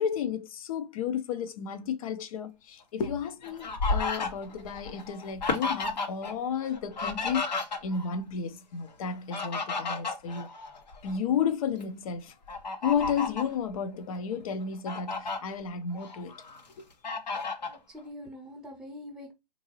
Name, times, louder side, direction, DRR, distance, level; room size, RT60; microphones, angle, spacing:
voice 1, 0.0-7.5 7.8-10.5 11.0-12.3 12.8-16.3 16.8-16.9, left 7 dB, 55° left, 0.6 m, -32 dB
Fowl, 3.0-6.3 6.6-8.2 9.1-11.2 11.6-11.8 12.5-13.5 14.1-14.2 14.6-15.4 15.9-16.6 17.0-17.8, left 4 dB, 90° left, 1.1 m, -33 dB
voice 2, 17.7-19.3, left 1 dB, ahead, 0.6 m, -44 dB
3.5 x 2.6 x 3.0 m
hypercardioid pair, 135°, 21 cm